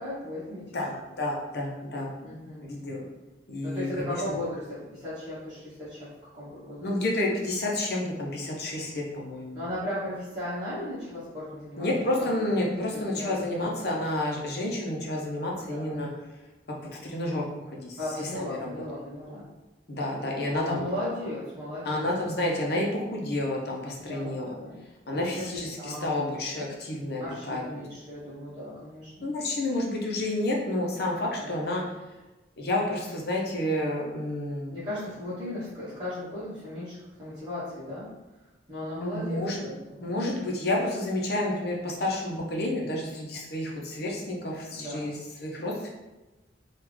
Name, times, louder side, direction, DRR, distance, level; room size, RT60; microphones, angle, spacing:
voice 1, 0.0-0.9 2.2-2.7 3.6-6.9 9.5-11.9 12.2-12.3 12.5-13.7 15.5-15.9 18.0-19.4 20.0-20.1 20.5-22.0 24.0-24.8 25.1-26.3 26.6-26.7 27.2-29.3 31.4-31.6 34.7-38.1 38.7-40.1 42.3-42.6 44.7-45.1, left 1 dB, 25° right, -12 dB, 1.0 m, -36 dB
voice 2, 0.7-2.1 2.6-3.1 3.5-4.4 6.8-9.6 11.8-16.1 16.9-18.8 19.9-20.8 21.8-24.6 25.1-27.8 29.2-31.8 32.6-34.7 39.0-39.7 40.0-45.9, left 1 dB, 60° left, -2 dB, 0.7 m, -30 dB
3.4 x 2.4 x 3.2 m, 1.1 s
head